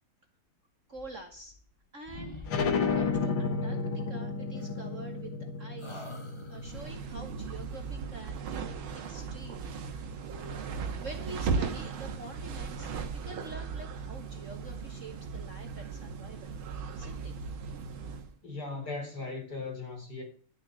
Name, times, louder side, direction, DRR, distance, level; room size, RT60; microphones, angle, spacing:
sound 1, 0.9-1.8 2.1-3.2 4.6-5.4 5.8-7.0, left 2 dB, 15° left, 1.5 m, -47 dB
voice 1, 0.9-1.5 1.9-5.3 5.6-6.0 6.5-8.8 9.1-9.7 9.9-10.2 11.0-12.9 13.2-16.6 16.9-17.3, right 3 dB, 40° right, 1.4 m, -46 dB
sound 2, 2.5-7.7, left 4 dB, 70° left, 2.2 m, -32 dB
sound 3, 6.6-18.3, right 5 dB, 80° right, 2.1 m, -37 dB
voice 2, 18.4-20.2, left 3 dB, 50° left, 4.7 m, -38 dB
12.0 x 7.2 x 6.9 m
omnidirectional pair, 2.2 m